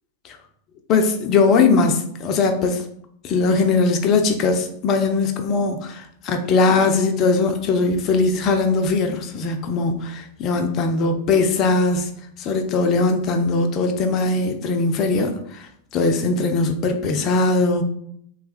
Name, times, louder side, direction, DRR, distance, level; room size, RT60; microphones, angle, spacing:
voice 1, 0.9-2.8 3.2-6.0 6.3-12.1 12.4-17.8, left 3 dB, 35° left, 5 dB, 0.5 m, -20 dB
3.4 x 2.0 x 4.2 m, 0.68 s
figure-of-eight pair, 90°, 0 cm